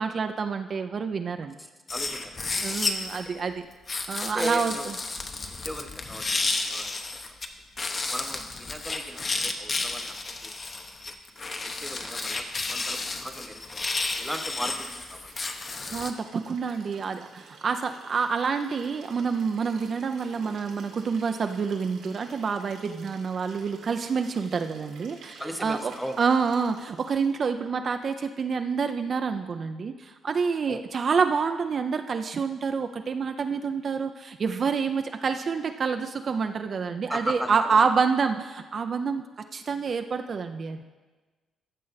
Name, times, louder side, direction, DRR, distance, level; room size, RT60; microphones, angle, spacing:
voice 1, 0.0-1.6 2.6-3.7 4.1-4.7 15.9-39.2 39.5-40.8, right 5 dB, 45° right, 7 dB, 0.5 m, -27 dB
voice 2, 1.6-2.4 2.7-2.8 3.2-3.6 4.2-4.9 5.6-6.3 6.6-7.0 7.3-7.4 8.1-10.2 10.4-11.1 11.6-13.9 14.2-15.3 25.4-26.2 30.7-30.8 37.1-37.9, equal, 5° left, 6 dB, 1.0 m, -37 dB
sound 1, 1.9-3.2 3.9-7.5 7.8-16.1, left 3 dB, 35° left, 0.9 m, -32 dB
Liquid, 11.4-27.4 28.7-28.8, right 4 dB, 85° right, 1.9 m, -51 dB
14.5 x 6.3 x 4.1 m, 1.3 s
cardioid pair, 90°, 0 cm